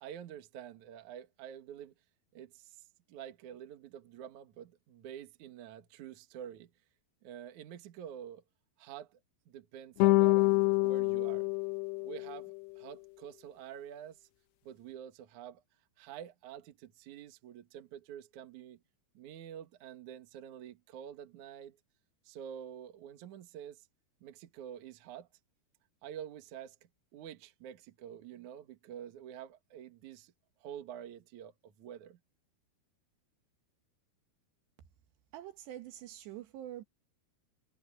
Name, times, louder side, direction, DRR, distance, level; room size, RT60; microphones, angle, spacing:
voice 1, 0.0-1.9 2.3-2.8 3.1-6.7 7.2-8.4 8.8-9.2 9.5-11.5 12.0-14.3 14.6-15.6 16.0-18.8 19.1-21.8 22.2-23.9 24.2-25.3 26.0-26.8 27.1-30.3 30.6-32.2, right 9 dB, 55° right, 2.5 m, -47 dB
sound 1, 10.0-12.6, left 23 dB, 80° left, 2.9 m, -27 dB
voice 2, 35.3-36.8, right 12 dB, 75° right, 3.6 m, -45 dB
omnidirectional pair, 5.0 m